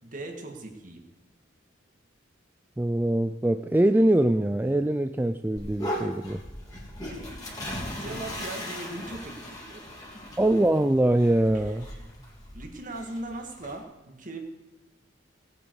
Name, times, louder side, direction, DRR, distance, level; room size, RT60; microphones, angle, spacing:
voice 1, 0.0-1.0 6.0-6.1 7.1-7.6 8.0-10.4 11.5-11.6 12.0-12.1 12.5-14.4, right 2 dB, 45° right, 3 dB, 2.1 m, -40 dB
voice 2, 2.8-6.4 10.4-11.9, right 1 dB, 10° right, 9 dB, 0.3 m, -23 dB
sound 1, 5.6-13.8, equal, 20° left, 3.4 m, -38 dB
18.0 x 9.2 x 4.8 m, 1.1 s
head